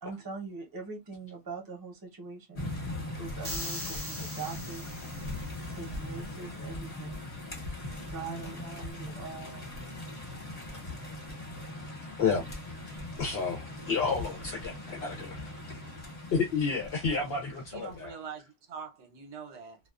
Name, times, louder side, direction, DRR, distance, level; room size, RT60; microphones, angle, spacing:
voice 1, 0.0-2.6 3.2-4.9 5.7-7.3 8.1-9.7, right 4 dB, 20° right, 0.7 m, -42 dB
sound 1, 2.6-18.1, left 1 dB, 35° left, 1.0 m, -40 dB
sound 2, 3.4-5.7, left 1 dB, 20° left, 0.4 m, -40 dB
voice 2, 12.2-12.5 13.2-15.4 16.3-18.2, left 5 dB, 65° left, 0.7 m, -30 dB
voice 3, 17.7-19.8, right 6 dB, 70° right, 1.0 m, -44 dB
2.3 x 2.3 x 2.3 m
omnidirectional pair, 1.2 m